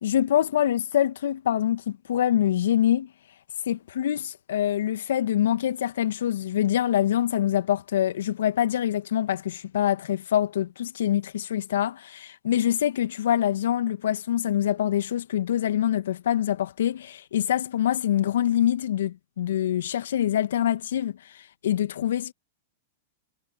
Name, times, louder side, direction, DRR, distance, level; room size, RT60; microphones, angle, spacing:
voice 1, 0.0-3.1 3.7-22.3, left 11 dB, 75° left, 1.8 m, -25 dB
hypercardioid pair, 105°, 0 cm